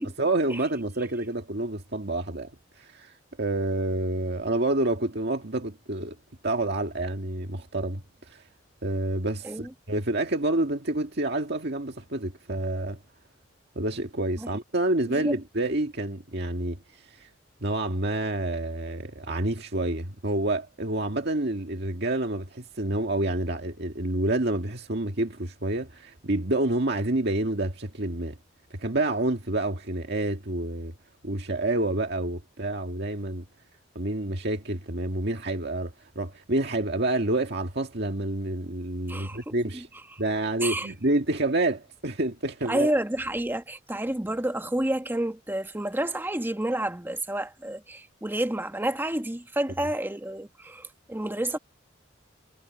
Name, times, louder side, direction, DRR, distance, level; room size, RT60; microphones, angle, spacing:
voice 1, 0.0-2.5 2.8-6.2 6.4-8.4 8.8-13.0 13.8-17.3 17.6-28.4 28.7-30.9 31.2-33.5 34.0-39.9 40.2-42.9, right 2 dB, 60° right, 1.9 m, -28 dB
voice 2, 39.1-39.8 40.1-40.2 40.6-40.9 42.7-51.6, right 1 dB, 10° right, 1.1 m, -30 dB
head